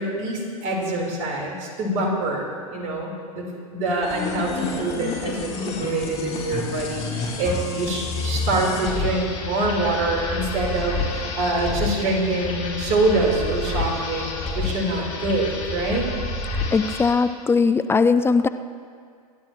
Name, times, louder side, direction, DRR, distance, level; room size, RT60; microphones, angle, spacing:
voice 1, 0.0-3.4 3.7-5.4 5.7-14.3 14.5-16.0, right 2 dB, 45° right, -1 dB, 4.0 m, -25 dB
sound 1, 4.0-17.2, left 3 dB, 35° left, 3.6 m, -29 dB
voice 2, 16.7-18.5, left 4 dB, 10° left, 11 dB, 0.4 m, -19 dB
26.0 x 12.0 x 3.1 m, 2.1 s
hypercardioid pair, 95°, 19 cm